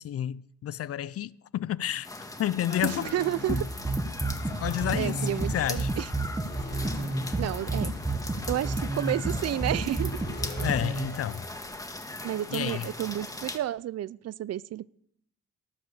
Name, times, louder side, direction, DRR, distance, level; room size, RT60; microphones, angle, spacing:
voice 1, 0.0-2.1 2.4-3.1 3.5-3.6 4.6-5.2 5.5-5.9 10.6-11.5 12.5-12.9, left 11 dB, 50° left, 0.5 m, -30 dB
sound 1, 2.0-13.6, left 2 dB, 10° left, 1.6 m, -40 dB
sound 2, 2.7-4.0 4.3-6.0 6.4-11.6, left 4 dB, 35° left, 1.6 m, -42 dB
voice 2, 2.8-3.7 5.0-6.1 7.4-7.9 8.5-10.2 12.2-14.9, right 12 dB, 55° right, 0.5 m, -31 dB
sound 3, 3.5-11.1, right 2 dB, 15° right, 1.4 m, -30 dB
18.5 x 7.8 x 6.9 m
cardioid pair, 90°, 30 cm